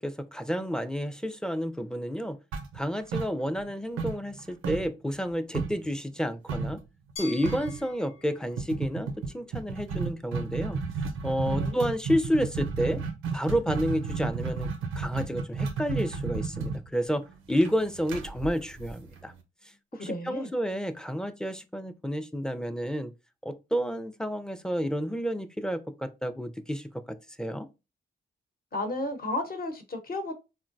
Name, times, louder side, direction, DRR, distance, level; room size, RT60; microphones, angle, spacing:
voice 1, 0.0-2.4 2.7-6.8 7.2-10.8 11.2-13.0 13.3-14.7 15.0-19.3 20.0-23.1 23.4-27.7, equal, 5° left, 0.4 m, -30 dB
sound 1, 2.5-3.7 4.0-5.9 6.5-6.8 7.1-7.2 7.4-7.8 8.6-19.4, right 4 dB, 90° right, 0.5 m, -32 dB
Glass, 7.2-10.1, left 3 dB, 85° left, 0.7 m, -47 dB
voice 2, 11.4-11.8 19.9-20.5 28.7-30.3, left 2 dB, 45° left, 1.0 m, -33 dB
3.8 x 2.1 x 2.5 m
supercardioid pair, 45°, 21 cm